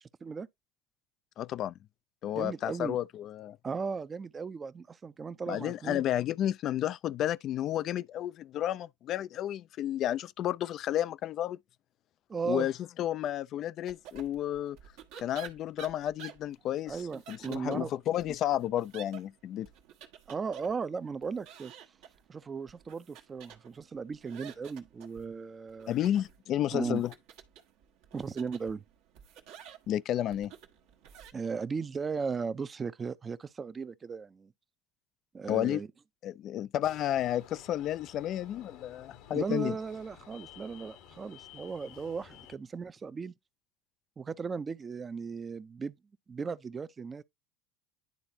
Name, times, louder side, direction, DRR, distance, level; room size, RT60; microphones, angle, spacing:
voice 1, 0.0-0.5 2.3-3.0 3.6-6.0 12.3-12.7 16.9-17.9 20.3-21.7 22.3-26.0 26.7-27.0 28.1-28.8 31.3-34.5 35.3-35.9 39.3-43.3 44.2-46.0 46.3-47.2, right 5 dB, 30° right, 0.6 m, -36 dB
voice 2, 1.4-1.7 2.2-3.6 5.5-11.6 12.5-12.7 13.0-14.8 15.2-17.0 17.3-19.7 25.9-27.1 29.9-30.5 35.5-35.8 36.2-39.7, left 12 dB, 50° left, 0.3 m, -31 dB
sound 1, 13.9-31.3, right 9 dB, 70° right, 1.3 m, -52 dB
sound 2, 36.8-42.6, left 9 dB, 70° left, 1.1 m, -53 dB
10.5 x 3.9 x 2.8 m
hypercardioid pair, 85°, 0 cm